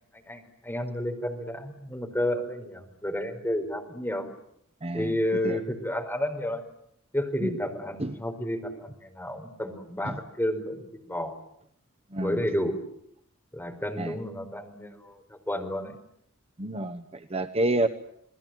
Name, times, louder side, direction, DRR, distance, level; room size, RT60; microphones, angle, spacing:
voice 1, 0.1-4.3 4.9-6.6 7.1-11.4 12.2-12.8 13.5-15.9, left 1 dB, 10° left, 3 dB, 4.6 m, -31 dB
voice 2, 4.8-5.1 5.4-5.6 7.4-7.5 8.0-8.2 10.1-10.2 12.1-12.4 14.0-14.2 16.6-17.9, right 1 dB, 30° right, 8 dB, 1.0 m, -29 dB
29.5 x 20.5 x 9.3 m, 0.72 s
head